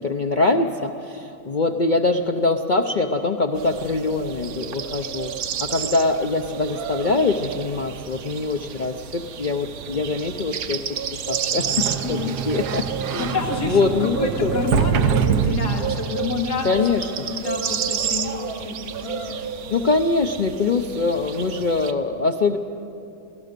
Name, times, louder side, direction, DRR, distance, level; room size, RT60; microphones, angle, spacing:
voice 1, 0.0-5.3 5.6-10.8 11.3-12.2 12.5-13.3 13.7-14.6 16.6-17.3 19.7-22.6, left 3 dB, 50° left, 4 dB, 0.5 m, -23 dB
sound 1, 3.5-21.9, right 7 dB, 65° right, 1.2 m, -31 dB
Sliding door, 11.5-16.3, right 7 dB, 85° right, 1.4 m, -24 dB
voice 2, 12.0-12.4 13.2-16.8 17.3-19.4, left 4 dB, 90° left, 2 dB, 2.5 m, -29 dB
24.5 x 17.0 x 6.7 m, 2.7 s
omnidirectional pair, 1.7 m